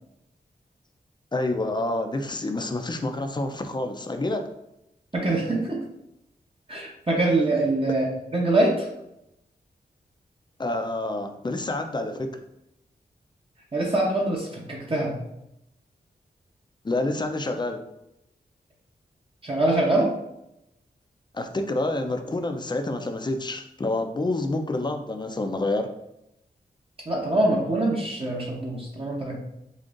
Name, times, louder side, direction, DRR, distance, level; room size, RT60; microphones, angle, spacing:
voice 1, 1.3-4.4 10.6-12.3 16.8-17.8 21.3-25.9, left 2 dB, 25° left, 5 dB, 0.5 m, -28 dB
voice 2, 5.1-5.8 6.7-8.0 8.3-8.9 13.7-15.2 19.4-20.1 27.1-29.4, right 2 dB, 35° right, -3 dB, 0.8 m, -24 dB
5.2 x 2.4 x 2.5 m, 0.84 s
wide cardioid pair, 75°, 17 cm